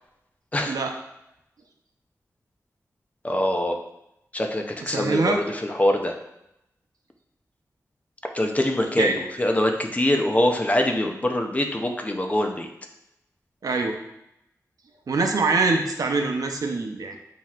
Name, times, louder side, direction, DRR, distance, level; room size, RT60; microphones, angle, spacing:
voice 1, 0.6-1.0 4.8-5.4 9.0-9.2 13.6-14.0 15.1-17.2, right 3 dB, 70° right, 3 dB, 0.6 m, -24 dB
voice 2, 3.2-3.8 4.3-6.1 8.3-12.7, left 1 dB, 25° left, 3 dB, 0.5 m, -24 dB
7.5 x 2.8 x 2.4 m, 0.84 s
wide cardioid pair, 110°, 6 cm